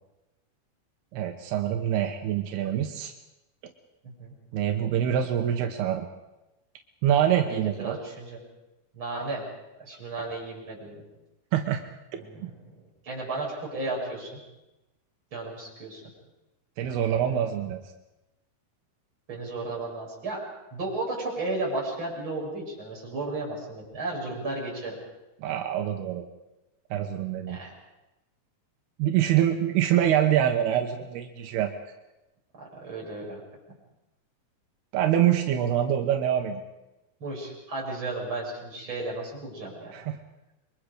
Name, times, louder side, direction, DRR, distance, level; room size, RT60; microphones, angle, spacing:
voice 1, 1.1-3.1 4.5-6.1 7.0-8.0 11.5-11.8 12.4-12.5 16.8-17.8 25.4-26.2 26.9-27.6 29.0-31.7 34.9-36.6 39.9-40.2, right 10 dB, 85° right, 4 dB, 3.1 m, -25 dB
voice 2, 4.0-4.3 7.4-8.4 8.9-9.4 9.8-11.0 12.2-12.5 13.0-14.4 15.3-16.0 17.0-17.4 19.3-20.4 20.7-24.9 27.5-27.7 32.6-33.4 37.2-39.9, right 2 dB, 30° right, -3 dB, 7.9 m, -34 dB
28.0 x 23.0 x 5.0 m, 0.98 s
omnidirectional pair, 4.4 m